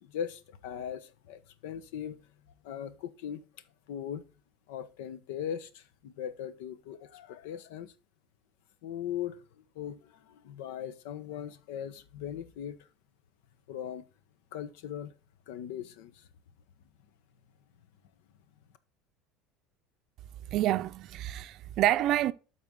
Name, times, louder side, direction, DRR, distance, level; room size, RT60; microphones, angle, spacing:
voice 1, 0.0-2.3 2.6-3.5 3.9-4.2 4.7-7.9 8.8-12.9 13.7-14.1 14.5-15.1 15.5-16.3, left 9 dB, 80° left, 0.9 m, -39 dB
voice 2, 20.5-22.3, right 13 dB, 50° right, 0.5 m, -27 dB
12.0 x 4.2 x 3.8 m
cardioid pair, 145°, 0 cm